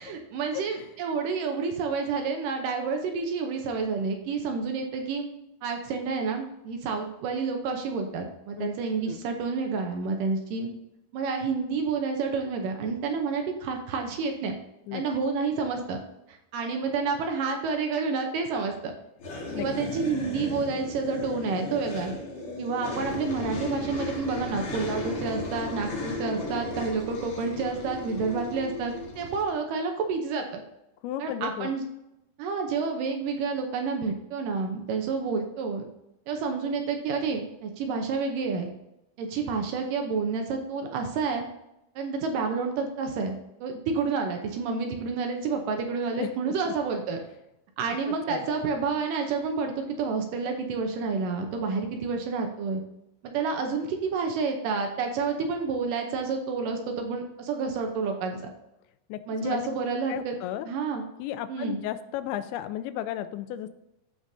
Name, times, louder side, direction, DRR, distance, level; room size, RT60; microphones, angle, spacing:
voice 1, 0.0-5.3 5.6-10.7 11.1-14.5 14.9-16.0 16.5-18.9 19.6-22.1 22.6-30.6 31.2-31.8 32.4-35.9 36.3-38.7 39.2-41.5 42.0-47.2 47.8-52.8 53.3-58.4 59.3-60.4 60.7-61.0 61.5-61.8, right 4 dB, 75° right, 3 dB, 2.2 m, -29 dB
voice 2, 0.5-0.8 8.6-8.7 9.1-9.2 14.9-15.0 19.5-19.9 31.0-31.7 46.2-46.5 47.9-48.4 59.1-59.7 60.1-60.7 61.2-63.7, left 12 dB, 90° left, 12 dB, 2.5 m, -34 dB
sound 1, 19.2-29.5, left 2 dB, 50° left, 2.1 m, -35 dB
14.5 x 5.0 x 2.7 m, 0.87 s
omnidirectional pair, 4.4 m